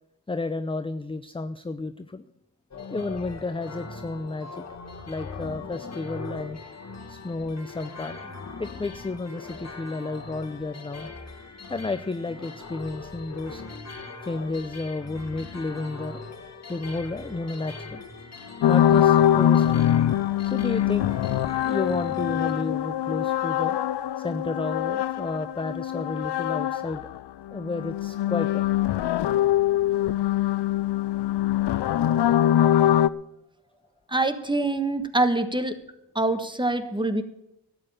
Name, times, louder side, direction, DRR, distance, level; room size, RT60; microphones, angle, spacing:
voice 1, 0.3-2.2 2.9-4.6 5.1-6.6 7.1-8.3 8.6-11.1 11.7-13.6 14.2-16.2 16.7-18.0 18.7-19.8 20.4-21.1 21.7-23.8 24.2-27.1 27.5-28.7, left 3 dB, 15° left, 11 dB, 0.6 m, -32 dB
sound 1, 2.7-22.5, left 4 dB, 35° left, 1.9 m, -41 dB
sound 2, 18.6-27.2 27.5-33.1, left 11 dB, 70° left, 0.6 m, -23 dB
voice 2, 34.1-35.8 36.1-37.2, right 2 dB, 10° right, 10 dB, 1.4 m, -25 dB
12.5 x 8.9 x 8.9 m, 0.83 s
cardioid pair, 85°, 43 cm